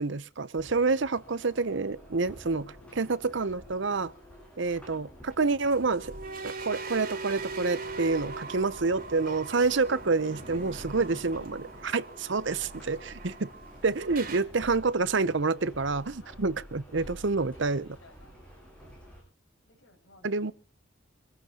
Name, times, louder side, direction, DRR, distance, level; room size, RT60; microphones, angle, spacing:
voice 1, 0.0-4.1 4.6-6.1 6.4-13.5 13.8-17.9 20.2-20.5, right 4 dB, 65° right, 0.8 m, -28 dB
sound 1, 0.6-19.2, equal, 5° left, 7.8 m, -49 dB
sound 2, 5.7-14.4, right 3 dB, 45° right, 2.9 m, -41 dB
voice 2, 13.0-13.5 14.3-14.5 16.2-16.4 17.0-18.3 19.7-20.5, left 2 dB, 70° left, 6.6 m, -60 dB
25.0 x 15.0 x 2.9 m
head